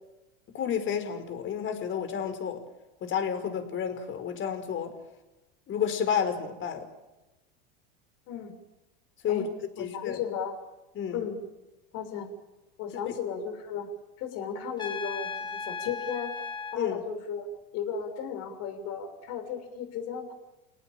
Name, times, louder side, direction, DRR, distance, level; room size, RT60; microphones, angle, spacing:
voice 1, 0.5-2.6 3.0-4.9 5.7-6.9 9.2-9.5 9.8-10.2 10.9-11.2 13.1-13.2 16.7-17.0, left 8 dB, 40° left, 8 dB, 5.2 m, -30 dB
voice 2, 9.8-10.6 11.1-11.4 11.9-12.3 12.8-13.9 14.2-16.3 16.7-17.5 17.7-20.3, left 7 dB, 60° left, 6 dB, 6.5 m, -35 dB
Trumpet, 14.8-16.8, left 5 dB, 15° left, 3.6 m, -36 dB
30.0 x 18.0 x 9.2 m, 1.0 s
hypercardioid pair, 95°, 29 cm